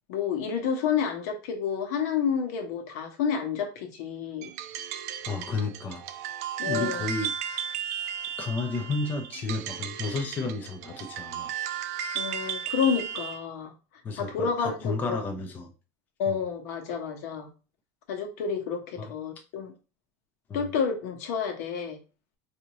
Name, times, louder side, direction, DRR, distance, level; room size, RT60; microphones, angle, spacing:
voice 1, 0.1-4.5 6.6-7.0 12.1-13.7 14.2-15.2 16.2-17.5 18.1-19.7 20.5-22.0, left 6 dB, 75° left, 3 dB, 1.1 m, -29 dB
sound 1, 4.4-13.4, right 9 dB, 70° right, 0.4 m, -35 dB
voice 2, 5.2-6.0 6.7-7.3 8.4-11.5 14.0-15.7 16.3-16.4 19.0-19.1 20.5-20.7, left 3 dB, 20° left, 3 dB, 0.5 m, -32 dB
4.9 x 2.7 x 3.0 m, 0.32 s
cardioid pair, 170°, 9 cm